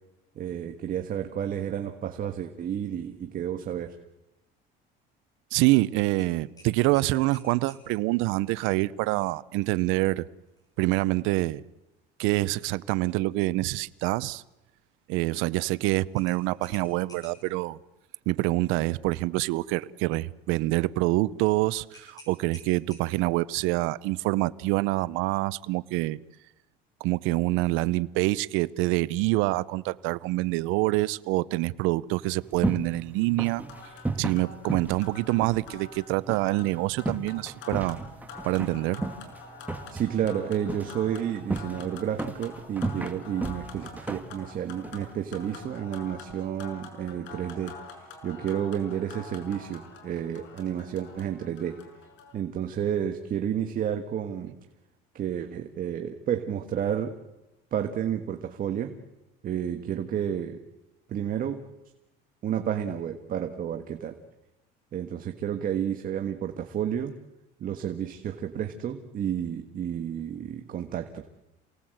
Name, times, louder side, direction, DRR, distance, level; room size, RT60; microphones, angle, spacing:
voice 1, 0.3-3.9 39.9-47.7 48.2-51.8 52.3-54.5 55.1-57.2 57.7-58.9 59.4-60.6 61.1-61.6 62.4-64.2 64.9-67.2 67.6-71.2, right 9 dB, 40° right, 1.6 m, -31 dB
voice 2, 5.5-10.2 10.8-11.6 12.2-14.4 15.1-17.8 18.3-26.2 27.0-33.6 34.2-38.0 38.4-39.0, right 19 dB, 75° right, 0.7 m, -26 dB
sound 1, 6.2-7.9 10.5-10.7 11.1-11.2 16.2-17.5 21.9-23.4, left 1 dB, 15° left, 8.0 m, -51 dB
sound 2, 32.2-45.7, right 2 dB, 10° right, 1.6 m, -36 dB
sound 3, 33.4-52.3, left 4 dB, 65° left, 5.5 m, -46 dB
28.0 x 18.5 x 7.9 m
cardioid pair, 120°, 21 cm